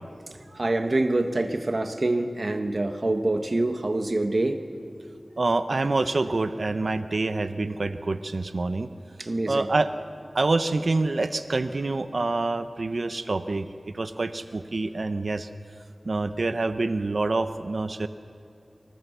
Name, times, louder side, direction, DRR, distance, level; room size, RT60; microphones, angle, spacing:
voice 1, 0.6-4.6 9.2-9.7, right 2 dB, 55° right, 7 dB, 1.4 m, -25 dB
voice 2, 5.4-8.9 9.5-9.9 10.3-13.7 13.9-15.5 16.1-18.1, right 3 dB, 70° right, 10 dB, 0.7 m, -26 dB
25.5 x 20.0 x 6.8 m, 2.4 s
wide cardioid pair, 60°, 0 cm